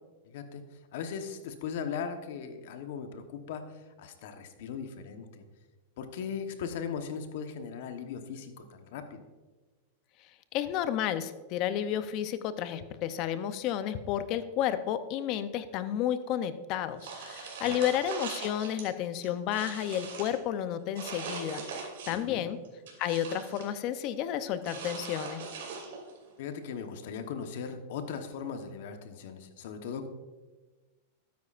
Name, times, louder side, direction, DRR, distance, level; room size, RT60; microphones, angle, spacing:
voice 1, 0.2-0.6 0.9-5.4 6.0-9.2 17.6-17.7 22.1-22.4 26.4-30.1, left 6 dB, 65° left, 7 dB, 1.1 m, -38 dB
voice 2, 10.5-22.6 23.0-25.5, left 10 dB, 45° left, 12 dB, 0.6 m, -31 dB
sound 1, 17.0-18.9 19.2-20.4 21.0-22.3 22.6-23.7 24.6-26.2, right 5 dB, 75° right, 2.7 m, -41 dB
13.0 x 9.5 x 2.5 m, 1.2 s
supercardioid pair, 135°, 0 cm